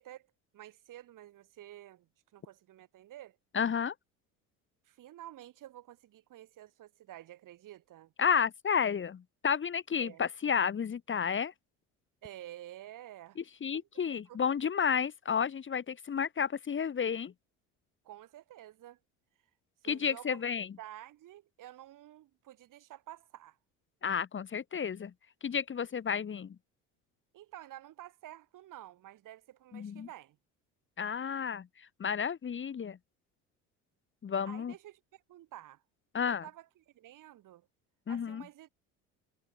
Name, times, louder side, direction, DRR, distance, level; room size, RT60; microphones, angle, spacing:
voice 1, 0.0-3.4 4.8-8.1 9.9-10.2 12.2-13.4 13.7-13.9 14.3-14.4 18.0-19.0 19.8-23.6 27.3-30.4 34.5-35.8 36.2-37.7 38.1-38.7, right 13 dB, 55° right, 2.8 m, -50 dB
voice 2, 3.5-3.9 8.2-11.5 13.4-17.3 19.9-20.7 24.0-25.1 25.4-26.6 29.7-30.1 31.0-33.0 34.2-34.7 36.1-36.5 38.1-38.4, left 7 dB, 35° left, 1.5 m, -32 dB
hypercardioid pair, 75°, 37 cm